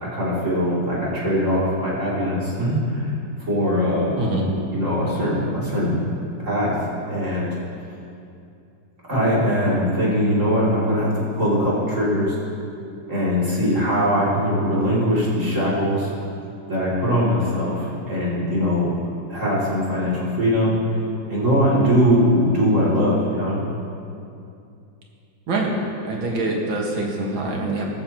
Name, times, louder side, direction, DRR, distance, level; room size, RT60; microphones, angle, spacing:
voice 1, 0.0-3.1 3.5-4.2 4.7-6.0 6.4-6.8 7.1-7.6 9.1-12.3 13.1-16.1 16.7-18.9 19.3-20.8 21.3-23.6, equal, 40° right, -8 dB, 3.4 m, -21 dB
voice 2, 26.0-27.8, right 2 dB, 85° right, -1 dB, 2.5 m, -24 dB
16.0 x 13.5 x 3.0 m, 2.6 s
omnidirectional pair, 2.1 m